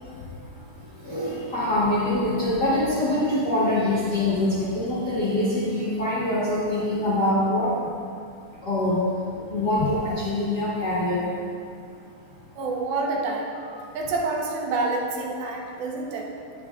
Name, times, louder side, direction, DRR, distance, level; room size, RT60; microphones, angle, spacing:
voice 1, 1.0-7.7 8.6-9.0 9.5-11.3, left 1 dB, 70° left, -9 dB, 0.9 m, -24 dB
voice 2, 12.6-13.5 13.9-16.3, right 3 dB, 85° right, -1 dB, 2.9 m, -27 dB
10.0 x 10.0 x 2.4 m, 2.4 s
omnidirectional pair, 4.2 m